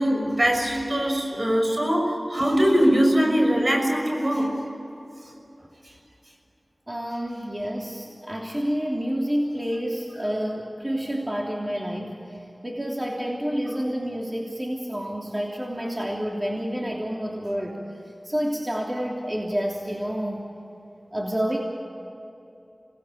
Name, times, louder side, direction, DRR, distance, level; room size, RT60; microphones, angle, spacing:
voice 1, 0.0-4.6, equal, 50° right, 2 dB, 6.4 m, -22 dB
voice 2, 6.9-17.8 18.0-20.5 21.1-21.6, equal, 25° right, -1 dB, 3.1 m, -29 dB
27.0 x 19.5 x 9.1 m, 2.9 s
wide cardioid pair, 40°, 0 cm